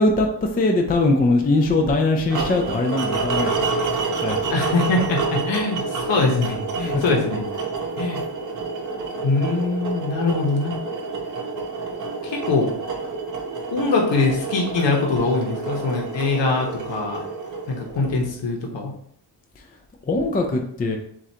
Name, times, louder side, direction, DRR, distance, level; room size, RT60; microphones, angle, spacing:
voice 1, 0.0-4.5 6.8-7.2 19.6-19.7 20.1-21.0, left 2 dB, 20° left, 2 dB, 0.4 m, -21 dB
sound 1, 2.3-18.4, right 4 dB, 45° right, 0.8 m, -28 dB
voice 2, 4.5-7.4 8.0-8.2 9.2-10.7 12.2-12.7 13.7-17.2 17.7-18.9, left 3 dB, 85° left, 0 dB, 1.0 m, -23 dB
7.4 x 2.5 x 2.8 m, 0.67 s
wide cardioid pair, 180°, 43 cm